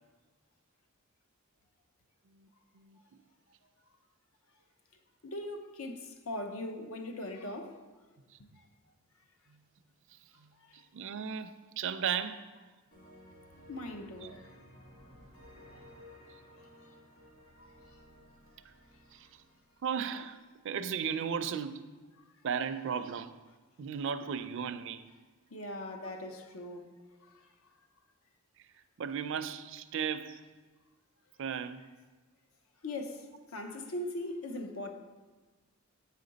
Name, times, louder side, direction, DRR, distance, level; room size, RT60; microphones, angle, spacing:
voice 1, 5.2-7.8 10.7-10.8 13.7-14.5 17.6-17.7 25.5-26.9 27.2-27.4 32.8-34.9, left 1 dB, 75° left, 0.7 m, -40 dB
voice 2, 10.4-12.5 14.2-14.4 18.6-18.7 19.1-19.4 19.8-20.4 20.6-21.8 22.4-23.4 23.8-25.0 29.0-30.4 31.4-31.9, right 7 dB, 60° right, 0.4 m, -36 dB
sound 1, 12.9-20.5, equal, 40° left, 1.8 m, -56 dB
8.4 x 5.0 x 4.0 m
head